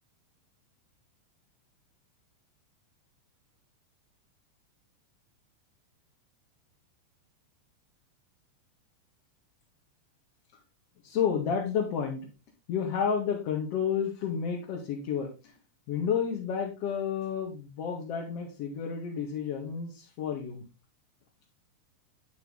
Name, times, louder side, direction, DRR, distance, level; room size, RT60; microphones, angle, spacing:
voice 1, 11.0-12.2 12.7-15.3 15.9-20.6, left 7 dB, 45° left, -2 dB, 2.0 m, -31 dB
9.2 x 5.9 x 4.0 m, 0.29 s
figure-of-eight pair, 90°, 0 cm